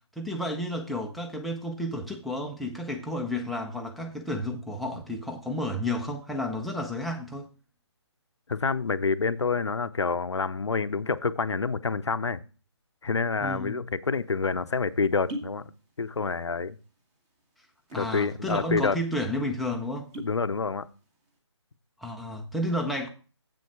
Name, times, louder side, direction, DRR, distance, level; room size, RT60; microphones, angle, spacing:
voice 1, 0.2-7.5 13.4-13.8 17.9-20.1 22.0-23.1, left 1 dB, ahead, 0.6 m, -31 dB
voice 2, 8.5-12.4 13.0-15.7 16.0-16.8 18.0-19.0 20.2-20.9, left 4 dB, 75° left, 0.7 m, -27 dB
sound 1, 14.2-14.3 15.1-15.6 15.9-16.5 16.8-17.0 17.7-18.2 18.6-18.7 19.0-19.2 19.9-20.4 20.9-21.2, right 1 dB, 20° right, 1.5 m, -39 dB
7.9 x 7.1 x 4.7 m
figure-of-eight pair, 145°, 15 cm